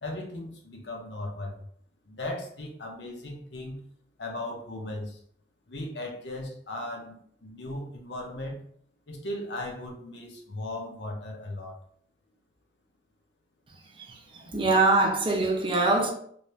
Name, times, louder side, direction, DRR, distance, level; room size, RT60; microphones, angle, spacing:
voice 1, 0.0-1.6 2.1-3.8 4.2-5.2 5.7-7.2 7.4-8.6 9.1-11.8, left 1 dB, 70° left, 0.9 m, -37 dB
voice 2, 14.5-16.1, right 3 dB, 30° right, 0.6 m, -22 dB
3.1 x 2.7 x 3.1 m
head